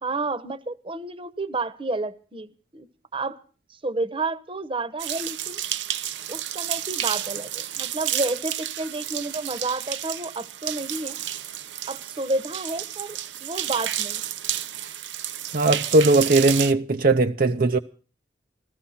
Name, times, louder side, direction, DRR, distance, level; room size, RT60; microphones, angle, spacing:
voice 1, 0.0-2.9 3.1-3.4 3.7-5.6 6.3-11.2 11.9-14.2, right 2 dB, 30° right, 1.0 m, -30 dB
sound 1, 5.0-16.7, right 11 dB, 85° right, 0.9 m, -31 dB
voice 2, 15.5-17.8, right 2 dB, 50° right, 0.6 m, -19 dB
15.0 x 14.5 x 5.7 m
head